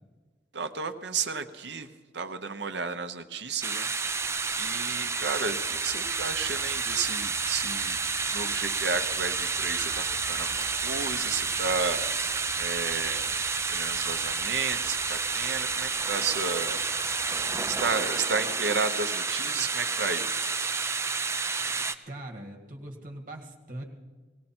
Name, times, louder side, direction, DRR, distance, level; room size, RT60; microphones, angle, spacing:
voice 1, 0.5-4.2 4.6-8.0 8.3-12.3 12.6-13.3 13.7-16.8 17.7-20.3 20.5-20.7, right 5 dB, 65° right, 8 dB, 0.9 m, -32 dB
sound 1, 3.6-21.9, right 4 dB, 15° right, 0.4 m, -30 dB
sound 2, 4.0-17.8, equal, 20° left, 5.2 m, -52 dB
voice 2, 22.1-23.8, right 1 dB, 45° right, 2 dB, 2.0 m, -41 dB
19.5 x 16.5 x 4.4 m, 1.4 s
head